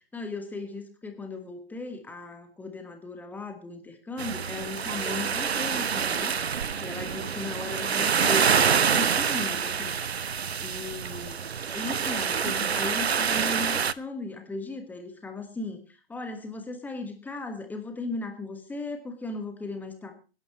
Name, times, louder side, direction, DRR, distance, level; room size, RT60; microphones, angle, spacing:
voice 1, 0.0-6.4 6.8-10.0 10.6-20.1, left 3 dB, 5° left, 6 dB, 1.4 m, -37 dB
sound 1, 4.2-13.9, right 6 dB, 75° right, 0.7 m, -26 dB
25.0 x 11.0 x 3.0 m, 0.33 s
figure-of-eight pair, 125°, 32 cm